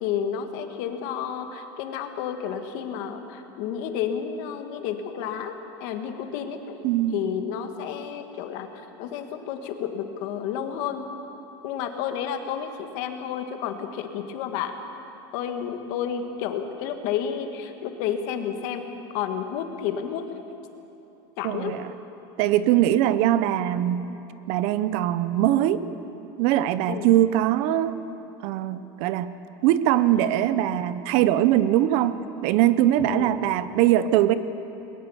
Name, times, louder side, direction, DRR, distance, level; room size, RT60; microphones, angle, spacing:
voice 1, 0.0-6.8 7.1-8.7 9.0-11.1 11.6-14.7 15.3-18.9 19.1-20.3 21.4-21.8 26.9-27.1 33.1-33.3, left 8 dB, 55° left, 6 dB, 1.7 m, -31 dB
voice 2, 6.8-7.3 21.4-21.9 22.4-24.1 24.5-25.8 26.4-28.0 28.4-29.4 29.6-34.3, right 13 dB, 50° right, 14 dB, 0.7 m, -22 dB
21.5 x 19.0 x 7.2 m, 2.9 s
cardioid pair, 170°, 12 cm